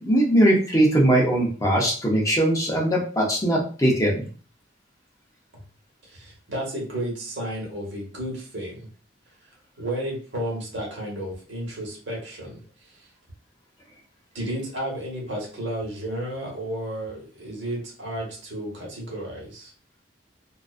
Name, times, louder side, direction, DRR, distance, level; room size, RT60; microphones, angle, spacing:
voice 1, 0.0-4.2, right 1 dB, 20° left, -2 dB, 0.6 m, -20 dB
voice 2, 6.0-8.9 9.8-12.6 12.9-13.0 14.3-19.7, right 1 dB, 65° right, -2 dB, 1.1 m, -32 dB
2.4 x 2.2 x 2.4 m, 0.40 s
head